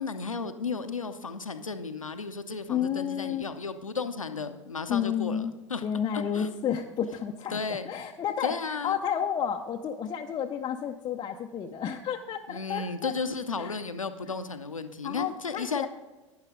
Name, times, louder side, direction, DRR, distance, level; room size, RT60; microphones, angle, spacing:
voice 1, 0.0-5.8 6.1-6.5 7.5-7.9 8.4-9.0 12.5-15.9, left 4 dB, 85° left, 9 dB, 0.7 m, -34 dB
voice 2, 2.7-3.4 4.9-5.5 5.8-8.5 8.8-13.1 13.6-13.8 15.0-15.9, left 8 dB, 25° left, 2 dB, 0.6 m, -31 dB
12.0 x 9.7 x 3.7 m, 1.2 s
figure-of-eight pair, 85°, 17 cm